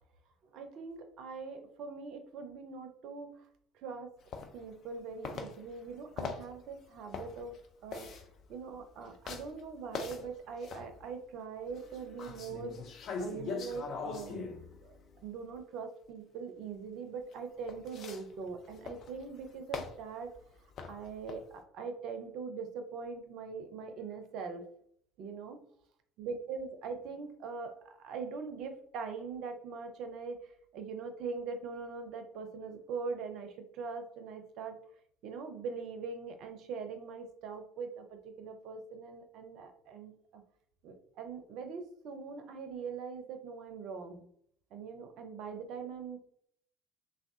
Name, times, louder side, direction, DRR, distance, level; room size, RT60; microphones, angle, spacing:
voice 1, 0.5-3.5 3.7-4.1 4.5-7.6 7.8-8.1 8.5-12.8 13.2-15.0 15.2-20.3 20.9-24.7 25.2-25.6 26.2-30.4 30.7-34.8 35.2-40.4 40.8-44.3 44.7-46.2, right 5 dB, 55° right, 6 dB, 0.5 m, -42 dB
sound 1, 4.3-5.0 5.2-11.1 11.7-15.6 17.3-21.5, left 5 dB, 50° left, 0.4 m, -42 dB
3.4 x 2.2 x 2.7 m, 0.67 s
figure-of-eight pair, 60°, 0 cm